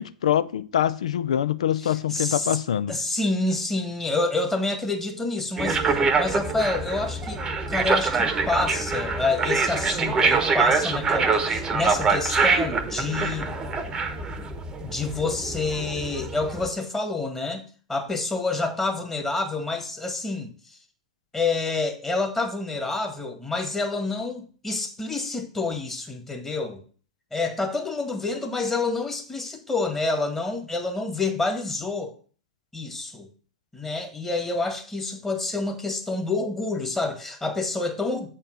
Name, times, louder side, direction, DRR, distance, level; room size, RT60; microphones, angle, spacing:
voice 1, 0.0-2.9, left 10 dB, 70° left, 0.5 m, -24 dB
voice 2, 1.8-2.6 2.9-7.4 7.7-13.5 14.8-17.6 17.9-20.8 21.3-26.8 27.3-32.1 32.7-33.3 33.7-38.3, left 3 dB, 10° left, 1.7 m, -28 dB
sound 1, 5.6-16.7, right 4 dB, 20° right, 1.0 m, -25 dB
7.3 x 4.5 x 6.1 m
figure-of-eight pair, 95°, 4 cm